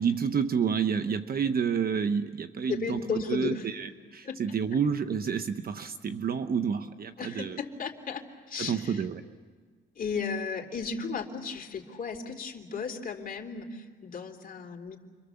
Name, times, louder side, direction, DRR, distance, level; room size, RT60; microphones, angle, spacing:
voice 1, 0.0-7.6 8.6-9.2, right 6 dB, 50° right, 9 dB, 1.1 m, -29 dB
voice 2, 2.7-3.7 4.2-4.4 7.2-9.1 9.9-15.0, left 5 dB, 45° left, 2 dB, 3.1 m, -35 dB
29.5 x 24.5 x 7.1 m, 1.5 s
cardioid pair, 90°, 20 cm